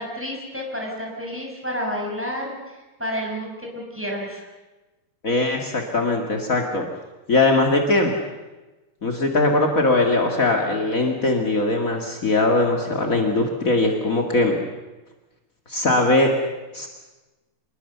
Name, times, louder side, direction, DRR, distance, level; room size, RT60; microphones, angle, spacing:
voice 1, 0.0-2.6 3.0-4.5, equal, 5° right, -1 dB, 6.0 m, -30 dB
voice 2, 5.2-6.8 7.3-8.1 9.0-14.6 15.7-16.3 16.7-16.9, left 2 dB, 55° left, 2 dB, 0.9 m, -20 dB
27.0 x 21.5 x 6.9 m, 1.1 s
omnidirectional pair, 5.2 m